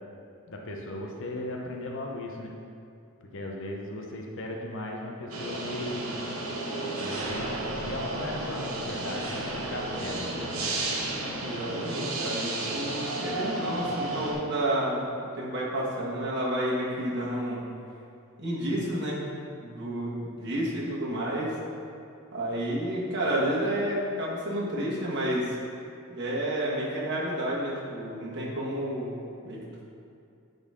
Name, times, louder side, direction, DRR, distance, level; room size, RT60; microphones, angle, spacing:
voice 1, 0.5-2.5 3.3-6.1 7.0-10.8, left 1 dB, 60° left, 0 dB, 0.8 m, -37 dB
sound 1, 5.3-14.3, right 2 dB, 75° right, 1.1 m, -32 dB
voice 2, 11.4-17.6 18.4-19.2 19.6-21.5 22.3-25.6 26.1-29.1 29.4-29.6, right 1 dB, 55° right, -5 dB, 1.6 m, -30 dB
10.0 x 4.0 x 3.7 m, 2.5 s
head